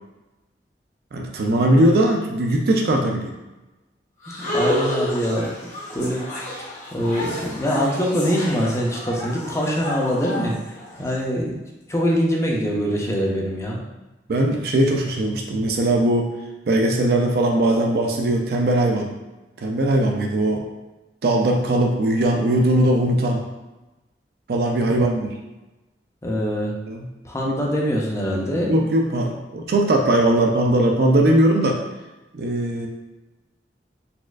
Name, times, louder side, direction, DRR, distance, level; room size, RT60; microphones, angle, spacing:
voice 1, 1.1-3.3 14.3-16.3 16.7-19.1 19.6-20.6 21.2-23.4 24.5-25.3 26.9-27.0 28.7-31.8 32.3-32.9, right 1 dB, 60° right, 1 dB, 0.4 m, -19 dB
sound 1, 4.2-11.1, left 1 dB, 45° left, 1.0 m, -29 dB
voice 2, 4.4-5.5 5.9-6.2 6.9-10.5 11.0-11.6 11.9-13.8 24.9-25.1 26.2-26.7 27.2-28.7, equal, 15° left, -2 dB, 0.5 m, -23 dB
4.1 x 2.4 x 2.3 m, 1.1 s
head